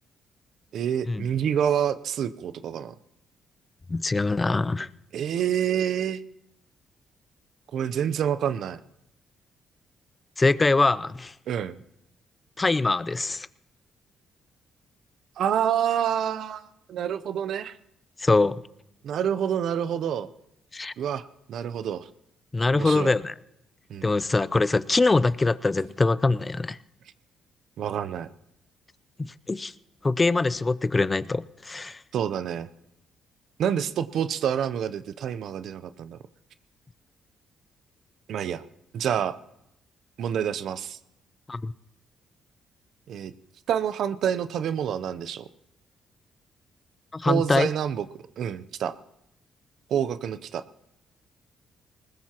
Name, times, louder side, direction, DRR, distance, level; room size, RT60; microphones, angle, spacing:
voice 1, 0.7-2.9 5.1-6.2 7.7-8.8 11.5-11.8 15.4-17.8 19.0-20.3 21.0-22.1 22.7-23.1 23.9-24.1 27.8-28.3 32.1-32.7 33.6-36.2 38.3-38.6 38.9-39.4 40.2-41.0 43.1-43.3 43.7-45.5 47.3-48.1 48.4-48.9 49.9-50.6, right 9 dB, 70° right, 13 dB, 0.6 m, -27 dB
voice 2, 3.9-4.9 10.4-11.3 12.6-13.5 18.2-18.6 20.7-20.9 22.5-23.3 24.0-26.8 29.5-29.7 30.0-32.0 41.5-41.7 47.1-47.7, left 3 dB, 25° left, 18 dB, 0.5 m, -23 dB
20.0 x 20.0 x 3.0 m, 0.81 s
cardioid pair, 90°, 0 cm